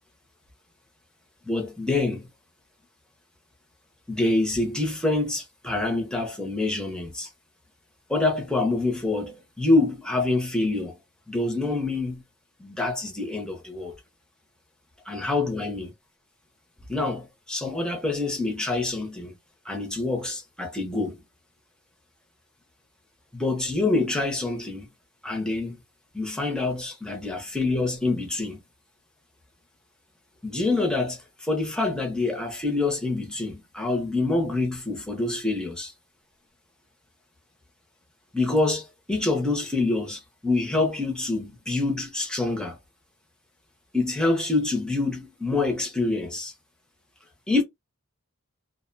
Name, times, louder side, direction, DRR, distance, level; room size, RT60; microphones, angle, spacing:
voice 1, 1.4-2.3 4.1-7.3 8.1-11.0 11.3-12.2 12.6-13.9 15.1-15.9 16.9-19.4 19.6-21.2 23.3-24.9 25.2-25.8 26.1-28.6 30.4-35.9 38.3-42.8 43.9-46.5 47.5-47.6, left 2 dB, 5° left, 0.7 m, -26 dB
2.5 x 2.1 x 2.5 m
head